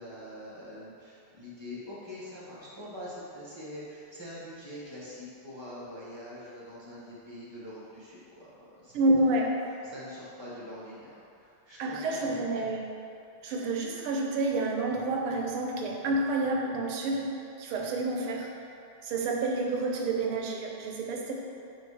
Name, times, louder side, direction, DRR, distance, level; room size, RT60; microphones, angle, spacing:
voice 1, 0.0-9.5 9.8-12.2 12.5-12.6, left 1 dB, 20° right, -8 dB, 0.7 m, -44 dB
voice 2, 8.9-9.5 11.8-12.9 13.4-17.3 17.6-18.7 19.0-21.3, right 2 dB, 85° right, 0 dB, 1.6 m, -29 dB
7.8 x 2.7 x 4.8 m, 2.6 s
omnidirectional pair, 2.3 m